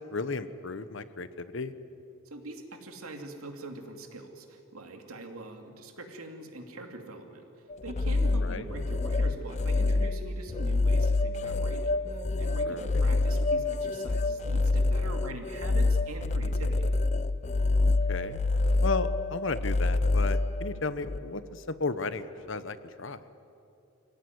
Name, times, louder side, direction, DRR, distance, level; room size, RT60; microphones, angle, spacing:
voice 1, 0.0-1.7 8.4-8.6 12.7-12.8 18.1-18.4 18.8-23.2, left 3 dB, 60° left, 13 dB, 1.0 m, -34 dB
voice 2, 2.3-7.4 7.8-16.9, right 2 dB, 85° right, 4 dB, 2.8 m, -43 dB
sound 1, 7.7-21.2, left 2 dB, 30° left, 0.5 m, -27 dB
25.5 x 17.0 x 9.6 m, 2.8 s
head